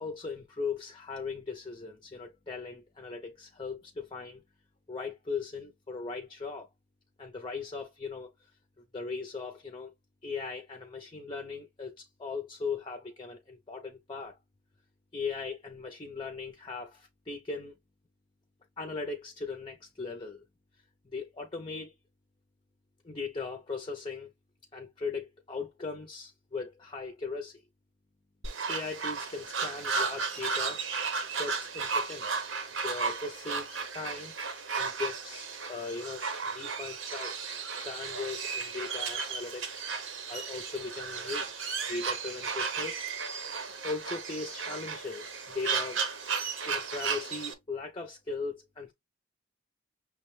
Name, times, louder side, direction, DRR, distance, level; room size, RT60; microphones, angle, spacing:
voice 1, 0.0-4.4 4.9-6.7 7.2-8.3 8.9-9.9 10.2-14.4 15.1-17.7 18.8-20.4 21.1-21.9 23.0-24.3 24.7-27.6 28.7-32.5 32.8-34.3 34.8-36.3 36.5-39.8 40.3-43.1 43.5-46.0 46.7-48.9, left 4 dB, 25° left, 0.4 m, -39 dB
sound 1, 28.4-47.5, right 5 dB, 75° right, 0.9 m, -34 dB
6.1 x 2.1 x 3.0 m
head